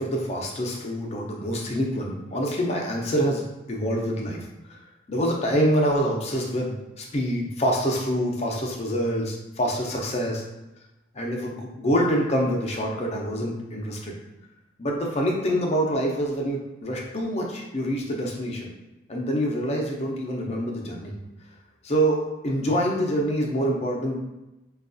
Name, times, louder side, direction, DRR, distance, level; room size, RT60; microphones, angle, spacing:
voice 1, 0.0-4.8 5.1-10.4 11.1-14.1 14.8-18.7 19.1-21.1 21.8-24.2, equal, 35° left, -1 dB, 0.6 m, -26 dB
4.5 x 2.3 x 2.5 m, 0.99 s
head